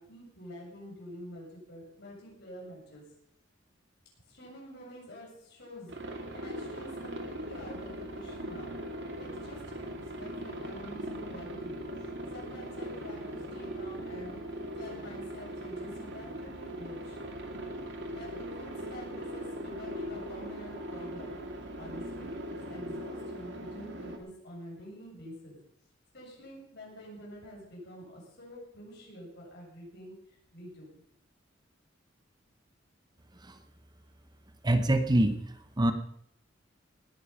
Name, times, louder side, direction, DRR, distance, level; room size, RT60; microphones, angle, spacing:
voice 1, 0.0-3.0 4.3-8.8 9.2-11.8 12.3-17.2 18.1-21.4 21.8-22.3 22.7-25.6 26.1-30.1 30.5-30.9, equal, 60° left, -2 dB, 7.2 m, -47 dB
Aircraft, 5.9-24.2, equal, 65° right, 2.4 m, -40 dB
voice 2, 34.6-35.4 35.8-35.9, right 1 dB, 20° right, 9 dB, 0.8 m, -23 dB
19.0 x 10.0 x 5.5 m, 0.70 s
head